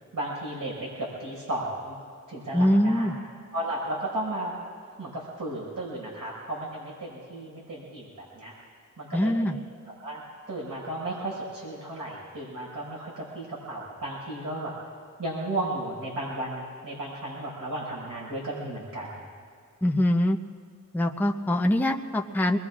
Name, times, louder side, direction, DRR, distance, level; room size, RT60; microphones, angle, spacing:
voice 1, 0.1-2.0 2.3-3.1 3.5-4.5 5.0-8.5 9.0-9.3 10.0-14.7 15.2-19.1, right 1 dB, 75° right, -4 dB, 5.3 m, -34 dB
voice 2, 2.5-3.1 9.1-9.6 19.8-20.4 20.9-22.6, left 1 dB, 5° left, 2 dB, 0.6 m, -23 dB
25.5 x 21.5 x 2.5 m, 2.1 s
wide cardioid pair, 110°, 33 cm